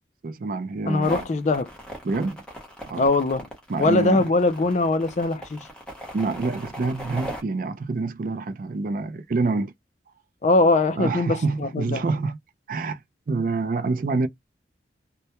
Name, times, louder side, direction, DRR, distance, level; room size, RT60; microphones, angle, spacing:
voice 1, 0.2-1.2 2.0-2.4 2.9-3.1 3.7-4.3 6.1-9.7 11.0-12.4 12.7-13.0 13.3-14.3, right 3 dB, 45° right, 0.4 m, -26 dB
voice 2, 0.9-1.7 3.0-3.5 3.8-5.7 10.4-12.0, left 2 dB, 40° left, 0.3 m, -21 dB
sound 1, 1.0-7.4, equal, 5° left, 0.7 m, -38 dB
2.1 x 2.1 x 2.8 m
head